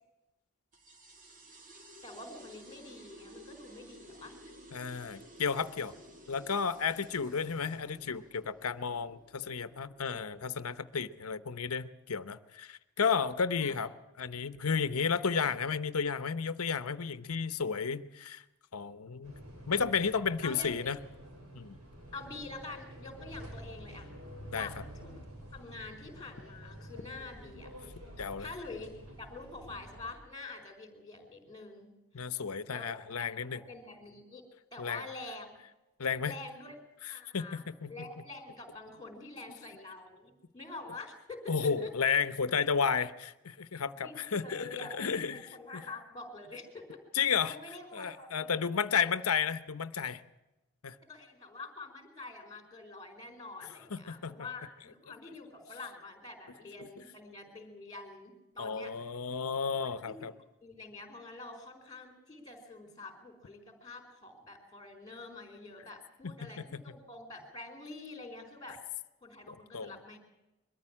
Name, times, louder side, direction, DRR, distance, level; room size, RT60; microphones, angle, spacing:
sound 1, 0.7-11.8, equal, 35° right, 2.3 m, -55 dB
voice 1, 2.0-4.3 10.1-10.2 13.6-13.8 20.4-20.9 22.1-24.1 24.5-24.7 25.0-25.1 25.5-27.7 28.4-32.3 32.7-32.9 33.2-34.4 34.7-35.5 36.2-36.8 37.1-41.9 44.0-45.1 45.3-47.0 47.4-48.6 51.0-58.9 59.8-60.1 60.6-68.8 69.2-70.2, left 3 dB, 20° left, 4 dB, 4.3 m, -46 dB
voice 2, 4.7-5.9 6.3-13.9 14.2-18.4 18.7-19.3 19.7-21.0 21.5-21.8 24.5-24.7 28.2-28.5 32.1-33.6 34.8-35.0 36.0-36.3 37.3-37.9 41.5-45.8 47.1-47.5 47.9-50.2 50.8-51.0 53.9-54.4 58.6-60.3 66.4-66.8 69.5-70.0, left 6 dB, 75° left, 13 dB, 0.9 m, -32 dB
sound 2, 19.2-30.1, equal, 85° right, 7.1 m, -49 dB
22.5 x 14.0 x 8.7 m, 0.99 s
head